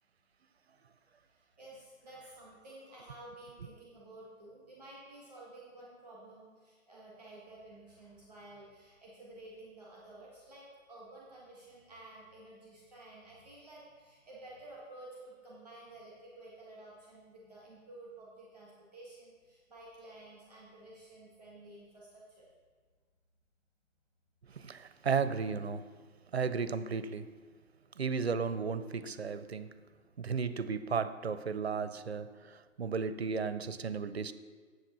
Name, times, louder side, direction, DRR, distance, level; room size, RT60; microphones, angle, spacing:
voice 1, 1.2-22.5, right 2 dB, 5° left, -5 dB, 1.0 m, -52 dB
voice 2, 24.5-25.9 26.3-27.4 28.0-29.8 30.2-34.3, right 5 dB, 50° right, 13 dB, 0.5 m, -34 dB
7.5 x 6.0 x 7.2 m, 1.5 s
hypercardioid pair, 175°, 42 cm